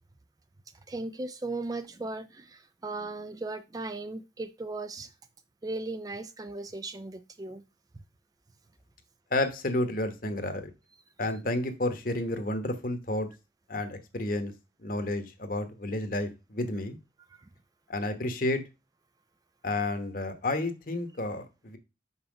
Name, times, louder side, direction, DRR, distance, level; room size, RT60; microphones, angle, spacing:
voice 1, 0.9-5.1 5.6-7.6 17.3-17.5, right 2 dB, 20° right, 0.3 m, -37 dB
voice 2, 9.3-10.7 11.2-13.3 13.7-14.5 14.8-17.0 17.9-18.6 19.6-21.8, left 2 dB, 45° left, 1.1 m, -31 dB
5.7 x 5.6 x 5.2 m
head